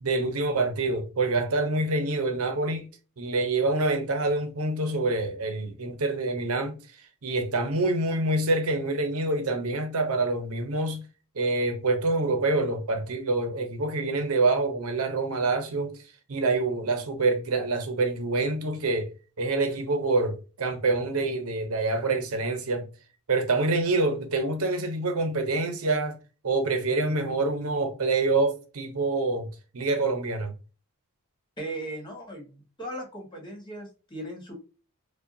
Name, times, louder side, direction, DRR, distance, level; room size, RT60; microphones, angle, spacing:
voice 1, 0.0-2.9 3.2-6.8 7.2-11.0 11.4-16.0 16.3-19.1 19.4-22.9 23.3-26.2 26.4-29.5 29.7-30.5, right 3 dB, 70° right, 0.8 m, -26 dB
voice 2, 31.6-32.4 32.8-34.5, right 1 dB, 20° left, 1.6 m, -37 dB
4.8 x 2.3 x 2.6 m
head